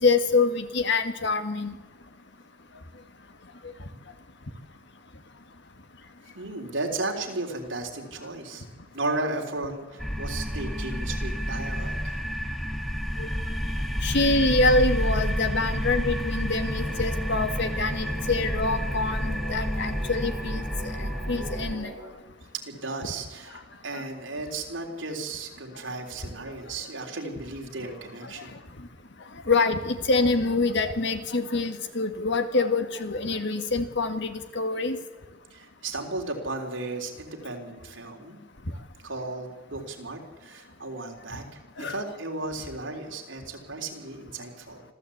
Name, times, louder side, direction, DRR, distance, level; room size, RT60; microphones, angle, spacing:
voice 1, 0.0-1.7 13.2-13.3 14.0-20.7 21.0-21.9 23.9-24.0 29.5-35.0 41.8-42.1, left 3 dB, 65° left, 8 dB, 1.9 m, -25 dB
voice 2, 6.4-8.7 8.9-12.2 18.3-18.4 22.7-28.6 35.5-38.4 39.0-44.8, right 2 dB, 75° right, 2 dB, 3.8 m, -35 dB
sound 1, 10.0-21.7, equal, ahead, 1.7 m, -29 dB
sound 2, 16.7-22.1, right 1 dB, 35° right, 7.6 m, -43 dB
26.0 x 14.5 x 8.6 m, 1.2 s
head